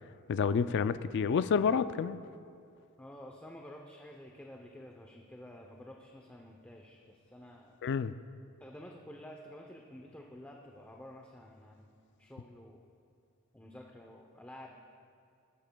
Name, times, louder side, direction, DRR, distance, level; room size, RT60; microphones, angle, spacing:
voice 1, 0.3-2.2 7.8-8.1, left 6 dB, 55° left, 13 dB, 0.3 m, -29 dB
voice 2, 3.0-7.8 8.6-11.9 12.2-12.9 13.5-14.8, left 1 dB, 5° left, 0 dB, 0.6 m, -50 dB
20.0 x 12.0 x 2.3 m, 2.4 s
head